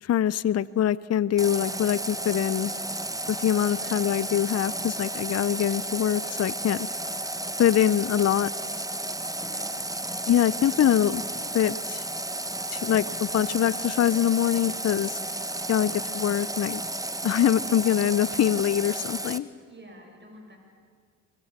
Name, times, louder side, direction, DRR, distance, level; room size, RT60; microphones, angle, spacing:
voice 1, 0.0-2.7 3.3-6.9 7.6-8.5 10.3-11.2 11.5-12.1 12.7-15.2 15.7-16.8 17.2-19.5, left 10 dB, 40° left, 19 dB, 0.6 m, -24 dB
Water tap faucet, 1.4-19.4, right 1 dB, 10° right, 1.3 m, -33 dB
voice 2, 3.8-4.2 9.4-9.9 19.6-20.6, right 1 dB, 25° right, 2 dB, 7.4 m, -48 dB
24.0 x 22.5 x 7.4 m, 2.1 s
hypercardioid pair, 55°, 40 cm